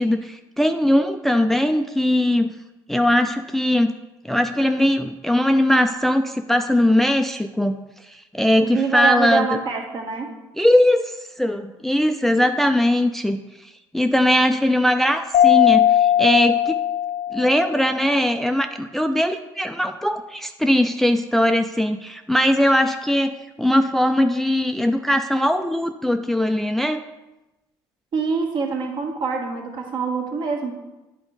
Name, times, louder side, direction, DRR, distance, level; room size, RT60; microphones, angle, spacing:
voice 1, 0.0-2.5 2.9-3.9 4.2-7.8 8.1-9.6 10.6-13.4 13.9-16.8 17.3-27.0, left 1 dB, 5° left, 7 dB, 0.4 m, -20 dB
voice 2, 8.6-10.3 28.1-30.7, right 4 dB, 55° right, 1 dB, 1.6 m, -25 dB
Mallet percussion, 15.3-17.9, left 11 dB, 75° left, 0.5 m, -18 dB
8.7 x 4.4 x 3.9 m, 1.0 s
supercardioid pair, 85°, 9 cm